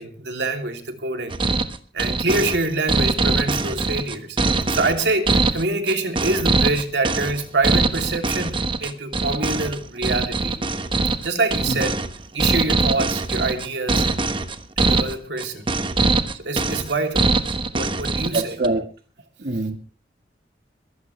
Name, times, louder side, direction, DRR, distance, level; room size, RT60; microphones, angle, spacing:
voice 1, 0.0-1.4 1.9-4.4 4.7-10.6 11.2-12.0 12.3-14.1 14.8-15.7 16.3-17.4 17.7-18.6, right 2 dB, 80° right, 3.0 m, -25 dB
sound 1, 1.3-18.7, right 3 dB, 30° right, 1.2 m, -22 dB
voice 2, 18.3-18.9 19.4-19.8, right 2 dB, 55° right, 1.5 m, -24 dB
22.5 x 15.5 x 3.3 m
head